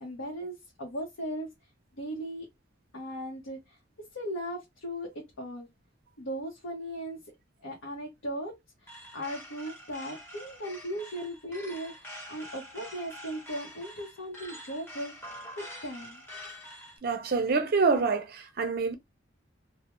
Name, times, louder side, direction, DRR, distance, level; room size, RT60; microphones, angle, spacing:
voice 1, 0.0-1.5 2.0-2.5 2.9-3.6 4.1-5.7 6.2-7.2 7.6-8.5 9.1-15.1 15.6-16.2, equal, 85° left, 0.8 m, -37 dB
sound 1, 8.9-17.0, equal, 10° left, 0.9 m, -46 dB
voice 2, 17.0-18.9, right 4 dB, 50° right, 0.5 m, -26 dB
2.3 x 2.1 x 2.9 m
head